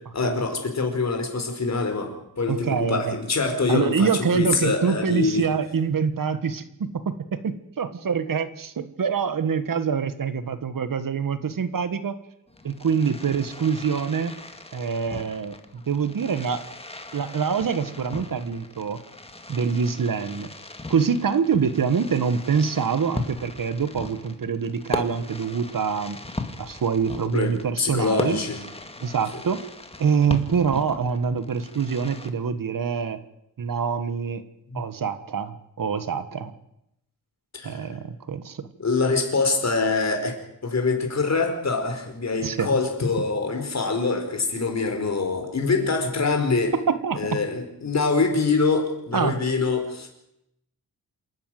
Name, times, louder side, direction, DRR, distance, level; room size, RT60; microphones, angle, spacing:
voice 1, 0.1-5.5 27.2-28.6 29.3-29.4 34.7-34.8 37.5-37.8 38.8-46.7 47.1-50.1, left 4 dB, 45° left, 4 dB, 4.9 m, -25 dB
voice 2, 2.5-3.2 3.7-12.2 12.6-14.3 14.7-16.6 17.1-19.0 19.5-20.5 20.9-26.2 26.6-28.4 29.0-29.6 30.0-33.2 33.6-34.4 34.7-36.5 37.6-38.7 42.4-42.8 46.9-47.4 49.1-49.4, right 6 dB, 60° right, 12 dB, 1.6 m, -25 dB
Fireworks, 12.5-32.3, left 2 dB, 15° left, 2.1 m, -38 dB
27.5 x 11.5 x 9.4 m, 0.82 s
wide cardioid pair, 115°, 38 cm